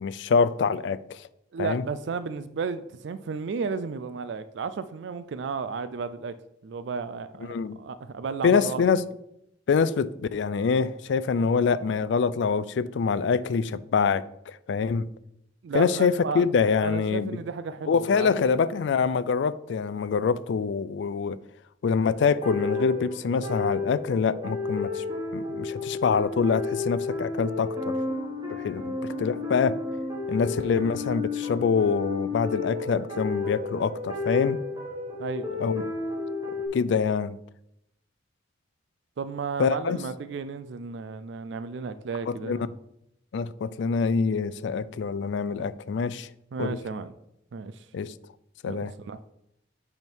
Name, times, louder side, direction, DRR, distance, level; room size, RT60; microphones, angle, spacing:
voice 1, 0.0-1.3 1.6-1.8 7.5-7.8 8.4-9.0 9.7-15.1 15.7-17.4 17.9-21.4 21.8-25.0 25.3-28.0 28.5-29.8 30.3-34.6 35.6-35.8 36.7-37.4 39.6-40.0 42.3-42.6 43.3-46.3 46.6-46.8 47.9-48.1 48.6-48.9, left 5 dB, 70° left, 0.3 m, -25 dB
voice 2, 1.5-6.3 6.6-8.8 15.6-16.5 16.8-18.3 35.2-35.6 39.2-42.7 46.5-47.1 47.5-47.8 48.7-49.2, right 5 dB, 70° right, 0.4 m, -33 dB
sound 1, 22.4-36.7, left 3 dB, 20° right, 1.6 m, -32 dB
7.9 x 3.5 x 4.5 m
head